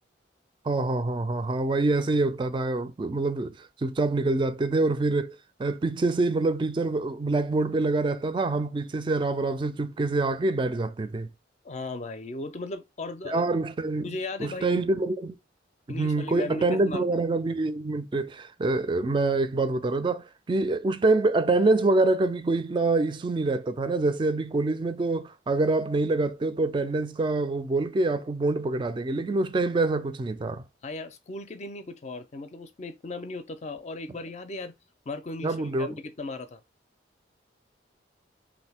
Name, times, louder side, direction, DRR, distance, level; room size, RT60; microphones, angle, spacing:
voice 1, 0.7-11.3 13.3-14.1 14.4-15.4 15.9-30.6 35.4-35.9, right 2 dB, 25° right, 0.3 m, -26 dB
voice 2, 11.6-13.4 14.0-14.8 15.9-17.0 30.8-34.7 35.1-36.6, left 2 dB, 35° left, 0.4 m, -36 dB
3.0 x 2.6 x 3.4 m
head